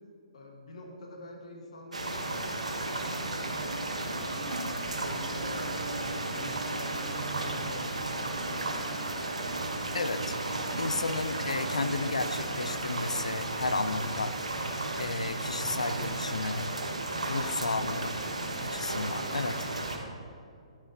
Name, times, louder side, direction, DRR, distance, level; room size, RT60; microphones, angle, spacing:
voice 1, 0.3-4.3 4.8-9.2, left 1 dB, 75° left, 1 dB, 1.6 m, -47 dB
sound 1, 1.9-20.0, right 2 dB, 90° right, 1.1 m, -34 dB
voice 2, 9.9-10.4 10.8-14.3 15.0-16.7 17.3-18.1 18.6-19.7, left 3 dB, 90° left, 12 dB, 0.5 m, -32 dB
11.5 x 9.0 x 2.8 m, 2.4 s
hypercardioid pair, 130°, 3 cm